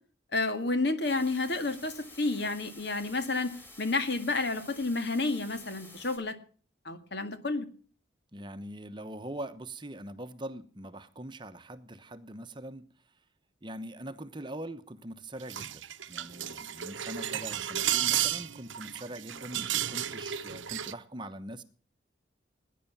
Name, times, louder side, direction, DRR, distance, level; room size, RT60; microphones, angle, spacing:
voice 1, 0.3-3.5 3.8-6.4 6.9-7.7, left 3 dB, 60° left, 9 dB, 2.0 m, -30 dB
sound 1, 1.0-6.2, left 1 dB, 10° left, 3.4 m, -51 dB
voice 2, 8.3-12.8 13.6-15.8 16.1-21.6, right 1 dB, 25° right, 9 dB, 1.0 m, -42 dB
sound 2, 15.4-20.9, right 11 dB, 85° right, 0.9 m, -33 dB
19.5 x 10.0 x 7.2 m, 0.42 s
head